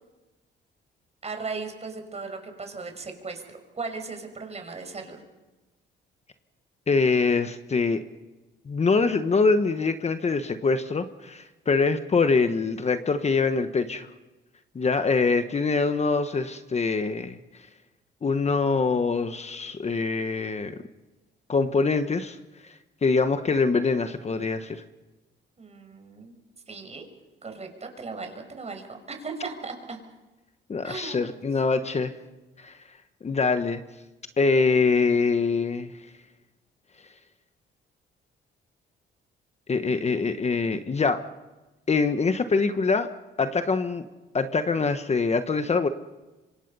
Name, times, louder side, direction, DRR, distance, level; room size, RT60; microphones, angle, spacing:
voice 1, 1.2-3.4 3.7-5.2 25.6-26.4 26.7-27.1 27.4-30.0 30.8-31.4, right 4 dB, 35° right, 5 dB, 5.4 m, -37 dB
voice 2, 6.9-8.0 8.7-14.1 14.7-17.4 18.2-20.7 21.5-22.4 22.6-22.7 23.0-24.8 30.7-32.1 32.6-32.7 33.2-33.8 34.4-35.9 39.7-41.2 41.9-43.1 43.4-44.0 44.3-45.9, left 4 dB, 35° left, 9 dB, 1.2 m, -24 dB
26.0 x 25.0 x 5.5 m, 1.1 s
cardioid pair, 90°, 20 cm